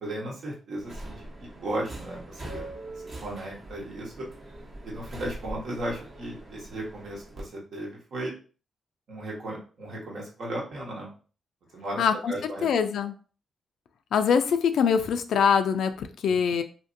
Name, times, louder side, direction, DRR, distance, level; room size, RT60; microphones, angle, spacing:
voice 1, 0.0-1.2 1.5-2.7 3.2-4.3 4.8-8.3 9.1-11.1 11.7-12.7 16.2-16.5, right 1 dB, 70° right, -3 dB, 1.2 m, -35 dB
Subway metro underground, 0.8-7.4, right 1 dB, 50° right, 1.0 m, -42 dB
voice 2, 12.0-13.1 14.1-16.6, left 7 dB, 80° left, 9 dB, 0.3 m, -24 dB
2.7 x 2.6 x 2.5 m, 0.38 s
cardioid pair, 70°, 0 cm